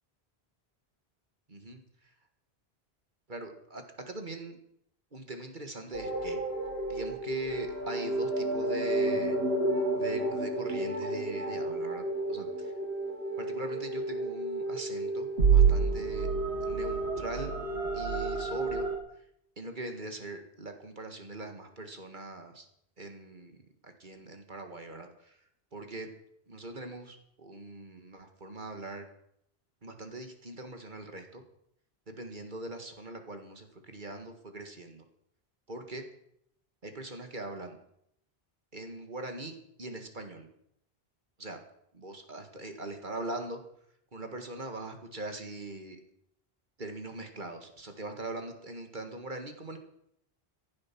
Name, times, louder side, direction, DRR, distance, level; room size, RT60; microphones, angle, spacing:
voice 1, 3.3-4.6 5.1-6.4 6.9-9.4 10.0-12.7 13.4-16.3 16.6-17.5 17.9-18.9 19.6-22.7 23.0-23.5 23.8-25.4 25.7-26.1 26.5-29.1 29.8-31.4 32.1-35.0 35.7-36.0 36.8-37.8 38.7-40.5 41.4-41.6 41.9-43.6 44.1-46.0 46.8-49.8, right 2 dB, 50° right, 6 dB, 2.0 m, -41 dB
sound 1, 5.9-19.0, right 3 dB, 85° right, 2.8 m, -30 dB
16.0 x 11.0 x 6.1 m, 0.74 s
omnidirectional pair, 1.1 m